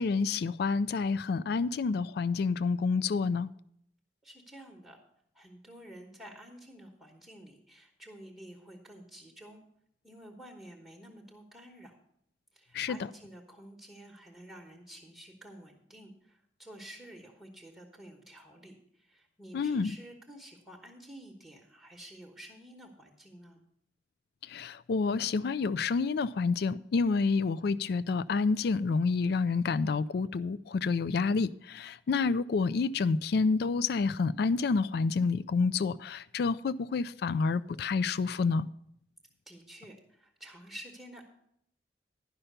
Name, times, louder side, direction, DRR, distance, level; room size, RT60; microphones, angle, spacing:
voice 1, 0.0-3.5 12.7-13.0 19.5-19.9 24.5-38.7, left 4 dB, 65° left, 0.4 m, -28 dB
voice 2, 4.2-5.0 5.3-9.6 10.0-12.0 12.5-23.6 39.5-41.2, right 1 dB, 5° right, 1.1 m, -50 dB
11.0 x 5.7 x 6.6 m
head